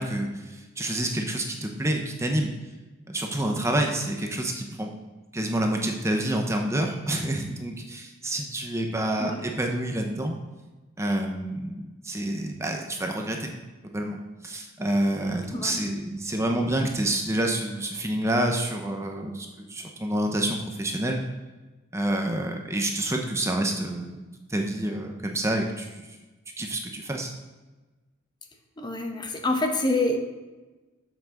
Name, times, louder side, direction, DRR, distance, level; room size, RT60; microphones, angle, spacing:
voice 1, 0.0-2.5 3.1-4.9 5.3-10.4 11.0-13.5 13.8-14.2 14.4-21.2 21.9-24.2 24.5-26.1 26.6-27.3, right 1 dB, 15° right, 2 dB, 0.8 m, -28 dB
voice 2, 15.5-15.9 28.8-30.2, left 2 dB, 20° left, 4 dB, 0.9 m, -26 dB
7.4 x 5.9 x 6.5 m, 1.2 s
head